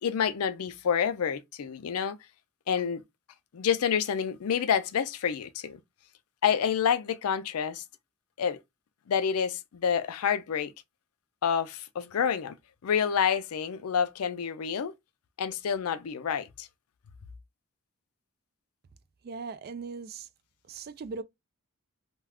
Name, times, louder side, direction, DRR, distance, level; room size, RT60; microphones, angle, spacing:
voice 1, 0.0-2.2 2.7-3.0 3.5-5.8 6.4-7.8 8.4-8.6 9.1-10.7 11.4-12.6 12.8-14.9 15.4-16.7, left 7 dB, 85° left, 0.4 m, -28 dB
voice 2, 19.2-20.3 20.7-21.2, right 4 dB, 45° right, 0.3 m, -39 dB
2.3 x 2.2 x 3.4 m
head